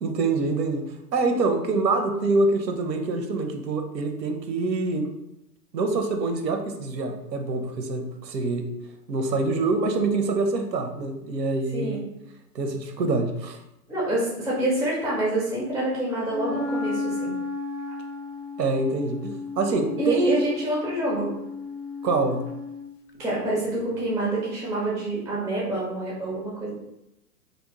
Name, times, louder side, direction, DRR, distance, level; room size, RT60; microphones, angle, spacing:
voice 1, 0.0-5.1 5.7-8.7 9.1-12.0 12.5-13.6 18.6-20.4 22.0-22.4, right 3 dB, 90° right, 5 dB, 0.6 m, -25 dB
voice 2, 11.7-12.0 13.9-17.3 20.0-21.3 23.2-26.7, right 1 dB, 5° right, -6 dB, 0.4 m, -27 dB
Wind instrument woodwind instrument, 16.3-22.9, left 3 dB, 85° left, 0.6 m, -33 dB
2.6 x 2.0 x 2.9 m, 0.87 s
hypercardioid pair, 125°, 48 cm